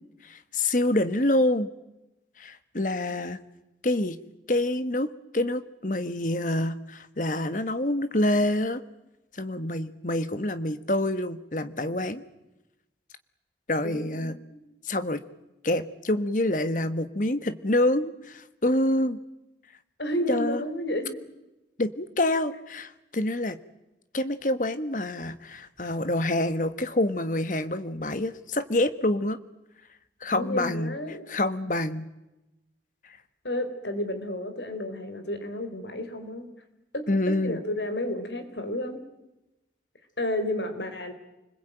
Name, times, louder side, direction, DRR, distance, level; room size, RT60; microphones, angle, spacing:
voice 1, 0.2-1.7 2.4-3.4 3.8-4.2 4.5-8.8 9.3-12.2 13.7-14.4 14.8-15.2 15.6-19.2 20.3-20.6 21.8-23.6 24.1-29.4 30.2-31.0 31.3-32.1 37.1-37.6, left 1 dB, 45° left, 11 dB, 1.4 m, -27 dB
voice 2, 13.8-14.6 20.0-21.2 30.4-31.2 33.4-36.5 36.9-39.0 40.2-41.1, left 1 dB, 80° left, 9 dB, 3.9 m, -31 dB
29.0 x 21.0 x 9.1 m, 0.97 s
head